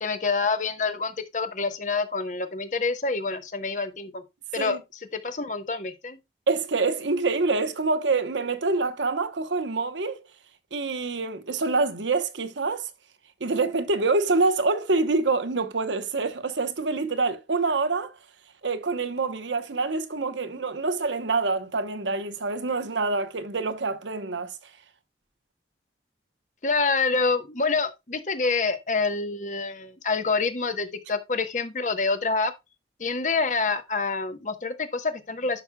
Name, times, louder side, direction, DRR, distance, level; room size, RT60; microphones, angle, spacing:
voice 1, 0.0-4.2 4.5-6.2 26.6-32.5 33.0-35.6, left 4 dB, 45° left, 1.0 m, -27 dB
voice 2, 6.5-10.2 10.7-12.9 13.4-18.1 18.6-24.5, right 3 dB, 90° right, 1.0 m, -26 dB
11.0 x 6.1 x 2.3 m
head